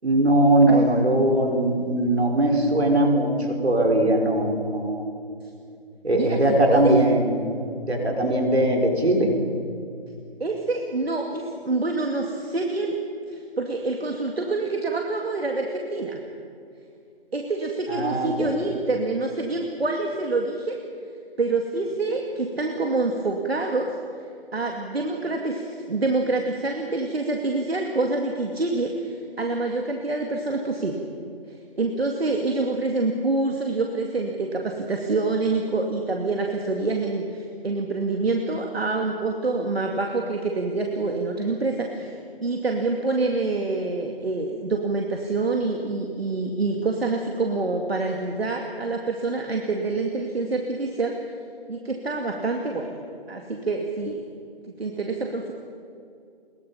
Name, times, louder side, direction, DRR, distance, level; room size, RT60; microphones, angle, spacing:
voice 1, 0.0-5.1 6.0-7.4 7.9-9.3 17.9-18.5, right 1 dB, 85° right, 1 dB, 5.1 m, -20 dB
voice 2, 6.1-6.9 8.2-8.4 10.4-13.0 13.3-16.2 17.3-20.8 21.4-24.2 24.5-31.0 31.5-42.1 42.4-51.2 51.7-53.0 53.3-54.2 54.7-55.5, right 3 dB, 70° right, 2 dB, 2.4 m, -26 dB
26.5 x 21.5 x 5.7 m, 2.4 s
figure-of-eight pair, 160°, 31 cm